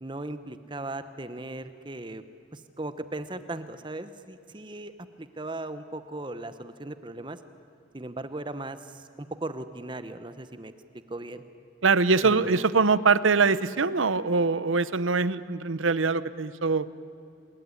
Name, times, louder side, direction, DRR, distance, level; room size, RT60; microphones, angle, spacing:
voice 1, 0.0-2.2 2.5-4.9 5.2-7.4 7.9-10.7 11.1-11.4 12.2-12.6, right 2 dB, 25° right, 11 dB, 0.9 m, -37 dB
voice 2, 11.8-17.0, right 4 dB, 85° right, 16 dB, 0.9 m, -23 dB
27.0 x 21.5 x 9.8 m, 2.4 s
head